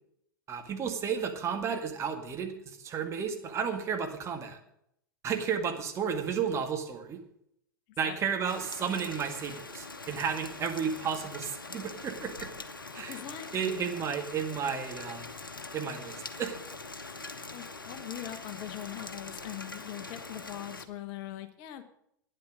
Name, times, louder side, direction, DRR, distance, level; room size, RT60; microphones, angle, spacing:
voice 1, 0.5-4.6 5.2-7.2 8.0-12.5 12.9-13.2 13.5-15.3 15.7-16.6, right 7 dB, 25° right, 4 dB, 2.0 m, -33 dB
Rain, 8.5-20.8, left 3 dB, 80° left, 1.1 m, -43 dB
voice 2, 13.0-13.9 17.5-21.8, left 12 dB, 40° left, 10 dB, 1.2 m, -42 dB
12.0 x 9.8 x 6.5 m, 0.73 s
figure-of-eight pair, 95°, 11 cm